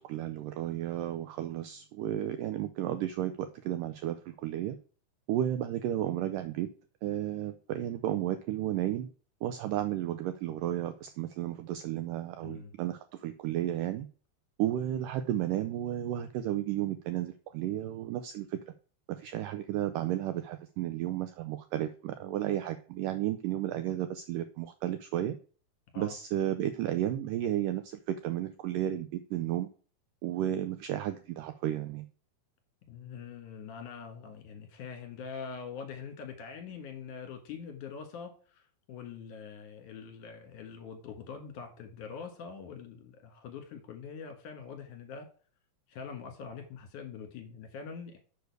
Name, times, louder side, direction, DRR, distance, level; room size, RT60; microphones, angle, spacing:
voice 1, 0.0-4.8 5.3-6.7 7.0-9.1 9.4-14.1 14.6-18.6 19.1-25.4 26.0-29.7 30.2-32.1, right 12 dB, 80° right, 10 dB, 1.9 m, -33 dB
voice 2, 12.4-12.7 25.9-26.1 32.9-45.3 45.9-48.2, left 6 dB, 60° left, 5 dB, 2.7 m, -44 dB
7.0 x 6.5 x 4.6 m, 0.40 s
omnidirectional pair, 4.4 m